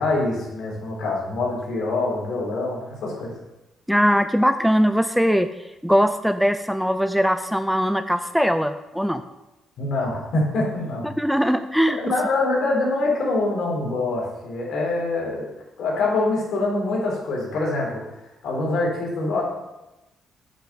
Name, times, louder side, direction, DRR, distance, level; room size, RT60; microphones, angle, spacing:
voice 1, 0.0-3.3 9.8-11.1 12.0-15.5 15.8-18.0 18.4-19.4, left 2 dB, 70° left, -2 dB, 4.0 m, -24 dB
voice 2, 3.9-5.5 5.8-9.2 11.0-12.0, equal, ahead, 10 dB, 0.5 m, -20 dB
8.6 x 5.9 x 7.6 m, 0.98 s
cardioid pair, 90°, 0 cm